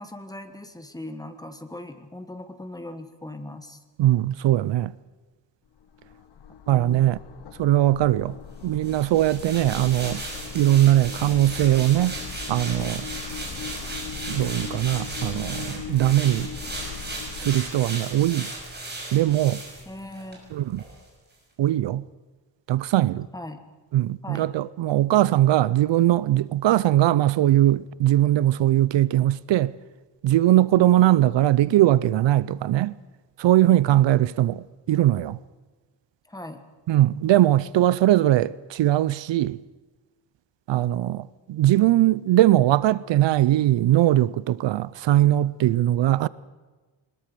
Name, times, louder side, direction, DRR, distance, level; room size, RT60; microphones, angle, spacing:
voice 1, 0.0-3.8 6.7-7.2 19.8-20.5 23.3-23.6 24.2-24.5 33.9-34.3 36.2-36.7, left 1 dB, 10° left, 1.3 m, -39 dB
voice 2, 4.0-4.9 6.7-7.2 7.6-8.4 8.6-10.2 10.5-12.2 12.5-13.1 14.3-16.5 17.4-18.5 19.1-19.6 20.5-20.8 21.6-22.0 22.7-23.3 23.9-29.7 30.2-32.9 33.4-35.4 36.9-39.6 40.7-46.3, right 14 dB, 70° right, 0.6 m, -20 dB
sound 1, 5.7-17.6, left 8 dB, 65° left, 1.4 m, -39 dB
sound 2, 8.8-20.4 20.7-20.9, right 2 dB, 20° right, 5.7 m, -36 dB
22.0 x 20.5 x 6.8 m
wide cardioid pair, 170°, 45 cm